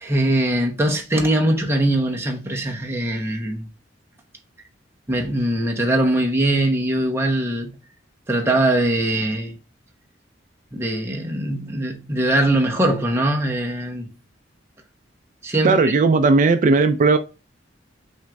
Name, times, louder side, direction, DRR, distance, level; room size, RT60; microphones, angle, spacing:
voice 1, 0.0-3.7 5.1-7.8 8.3-9.6 10.7-14.1 15.4-15.9, right 1 dB, 15° right, 0.9 m, -21 dB
voice 2, 15.6-17.2, right 3 dB, 40° right, 0.3 m, -16 dB
6.2 x 2.5 x 3.3 m
head